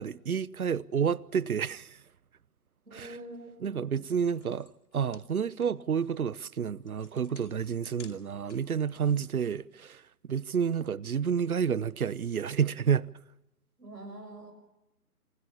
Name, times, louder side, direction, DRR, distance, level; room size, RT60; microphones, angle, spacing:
voice 1, 0.0-2.0 2.9-3.1 3.6-10.0 10.3-13.1, right 7 dB, 65° right, 0.9 m, -30 dB
voice 2, 2.8-3.9 13.8-14.5, right 1 dB, 85° right, 6.4 m, -45 dB
sound 1, 3.6-3.8 4.0-8.8, left 7 dB, 50° left, 2.8 m, -57 dB
26.5 x 19.5 x 7.1 m
figure-of-eight pair, 145°, 46 cm